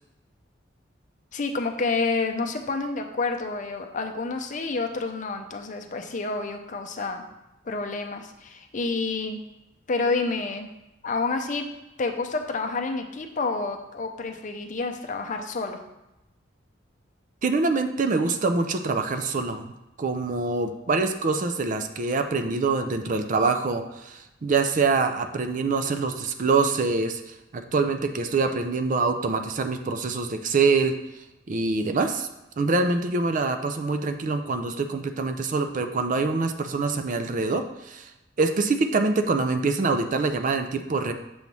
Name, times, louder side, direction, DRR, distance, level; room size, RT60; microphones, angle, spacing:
voice 1, 1.3-7.2 7.7-9.4 9.9-10.7 11.0-11.6 12.0-15.8, left 3 dB, 40° left, 5 dB, 0.6 m, -29 dB
voice 2, 17.4-31.0 31.5-32.3 32.6-38.1 38.4-41.1, right 3 dB, 40° right, 7 dB, 0.4 m, -25 dB
7.0 x 3.1 x 5.3 m, 0.94 s
head